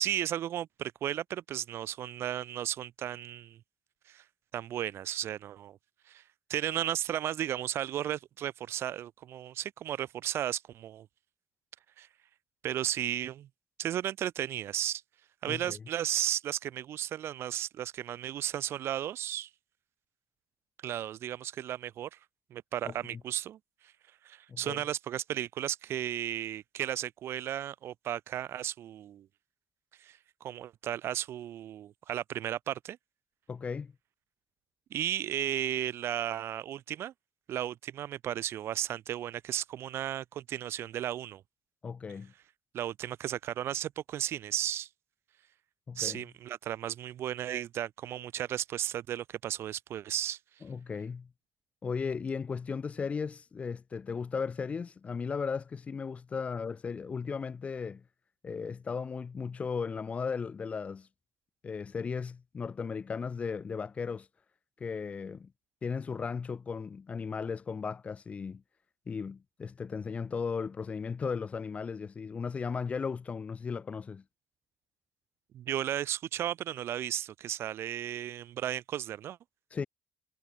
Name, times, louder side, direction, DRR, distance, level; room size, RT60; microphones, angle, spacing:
voice 1, 0.0-3.6 4.1-4.2 4.5-5.8 6.1-6.2 6.5-11.1 12.0-12.1 12.6-13.5 13.8-15.0 15.4-19.5 20.8-22.2 22.5-23.6 24.2-29.3 30.0-33.0 34.9-37.1 37.5-41.4 42.7-44.9 46.0-50.4 75.5-79.4, right 11 dB, 55° right, 2.2 m, -34 dB
voice 2, 15.5-15.8 22.9-23.2 24.5-24.8 33.5-33.9 41.8-42.3 45.9-46.2 50.6-51.3 51.8-58.0 58.4-61.1 61.6-64.3 64.8-65.5 65.8-68.6 69.1-74.2 79.7-79.9, left 5 dB, 25° left, 1.2 m, -36 dB
cardioid pair, 160°, 5 cm